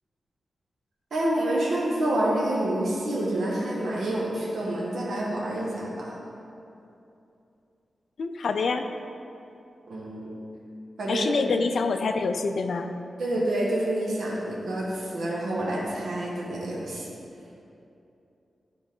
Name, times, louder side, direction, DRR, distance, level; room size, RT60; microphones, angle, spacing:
voice 1, 1.1-6.1 9.9-10.3 11.0-11.5 13.2-17.1, right 1 dB, 80° right, -5 dB, 1.2 m, -28 dB
voice 2, 8.2-8.8 11.1-12.9, left 4 dB, 65° left, 7 dB, 0.4 m, -26 dB
10.0 x 4.1 x 3.7 m, 2.7 s
wide cardioid pair, 115°, 0 cm